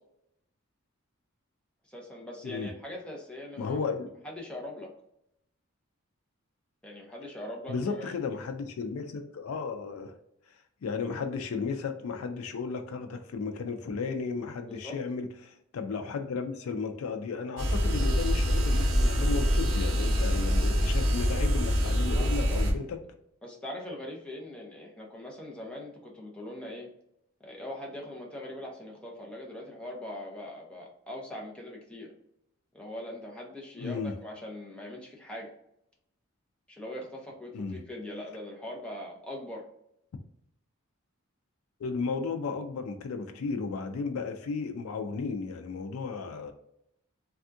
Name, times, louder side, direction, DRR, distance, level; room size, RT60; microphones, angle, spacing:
voice 1, 1.9-3.8 4.2-4.9 6.8-8.1 14.7-15.0 22.1-22.6 23.4-26.9 27.4-32.1 32.7-35.5 36.7-39.7, left 1 dB, 5° left, -2 dB, 0.7 m, -41 dB
voice 2, 3.6-4.1 7.7-10.2 10.8-23.0 33.8-34.1 37.5-37.8 41.8-46.5, left 4 dB, 85° left, 5 dB, 0.4 m, -34 dB
sound 1, 17.6-22.7, equal, 60° right, 0.7 m, -25 dB
3.4 x 2.3 x 2.6 m, 0.77 s
head